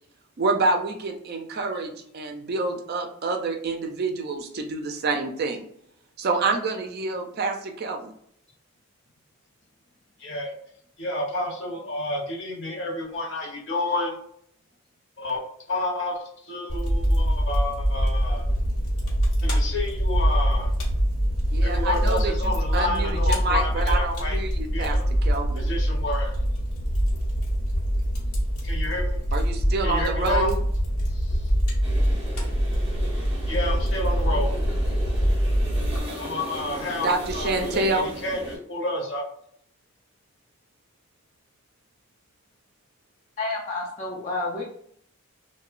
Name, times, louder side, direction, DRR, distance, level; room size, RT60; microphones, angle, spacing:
voice 1, 0.4-5.7 6.2-8.1 21.5-25.7 29.3-30.6 37.0-38.1, right 3 dB, 45° right, 3 dB, 0.4 m, -27 dB
voice 2, 10.2-10.5 11.0-14.2 15.2-15.4 15.7-16.2 16.5-18.4 19.5-20.7 21.6-24.4 24.7-25.0 25.6-26.3 28.6-29.2 29.8-30.5 33.5-34.6 36.1-38.4 38.7-39.2, left 2 dB, 55° left, -2 dB, 0.8 m, -30 dB
Fire, 16.7-36.0, equal, 80° left, 1.0 m, -24 dB
sound 1, 31.8-38.6, equal, 25° right, 0.7 m, -36 dB
voice 3, 43.4-44.6, left 2 dB, 30° left, -2 dB, 0.4 m, -29 dB
2.8 x 2.1 x 2.4 m, 0.67 s
head